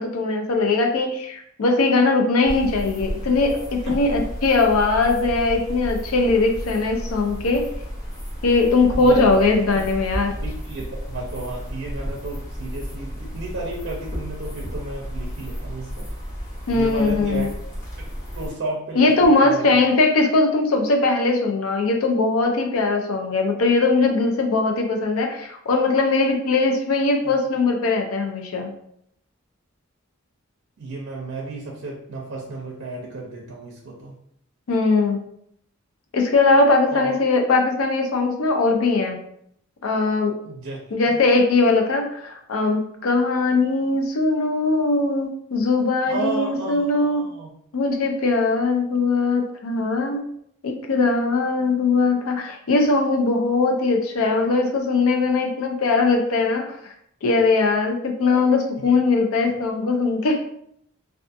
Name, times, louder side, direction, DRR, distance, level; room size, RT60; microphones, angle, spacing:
voice 1, 0.0-7.7 8.4-10.3 16.7-17.4 19.0-28.7 34.7-35.2 36.1-39.2 39.8-40.4 40.9-47.3 47.7-50.2 50.6-56.9 57.2-60.4, left 3 dB, 85° left, 4 dB, 0.5 m, -20 dB
sound 1, 2.4-18.5, equal, 45° left, 1.0 m, -32 dB
voice 2, 8.9-9.3 9.7-9.8 10.4-16.1 16.7-17.5 18.0-19.7 30.8-34.2 36.9-37.1 40.4-40.8 41.1-41.2 46.1-47.5 58.2-58.4 59.5-59.6, right 2 dB, 60° right, -2 dB, 0.5 m, -33 dB
2.5 x 2.4 x 2.4 m, 0.70 s
head